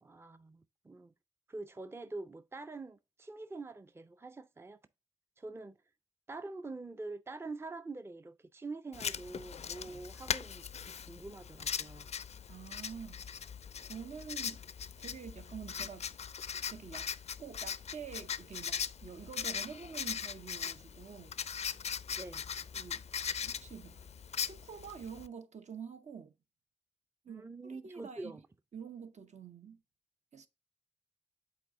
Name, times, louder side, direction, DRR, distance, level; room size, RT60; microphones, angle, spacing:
voice 1, 0.0-1.1 1.5-4.8 5.4-5.8 6.3-10.7 11.1-12.1 22.2-22.4 27.3-28.4, right 3 dB, 20° right, 0.5 m, -45 dB
Writing, 8.9-25.3, left 7 dB, 55° left, 0.4 m, -40 dB
voice 2, 12.5-13.3 13.8-14.6 15.0-16.1 16.7-17.1 17.4-21.4 22.7-23.0 23.4-24.0 24.4-26.3 27.2-28.4 28.7-29.8 30.3-30.5, right 6 dB, 60° right, 0.7 m, -47 dB
7.5 x 4.1 x 3.6 m
cardioid pair, 50°, 13 cm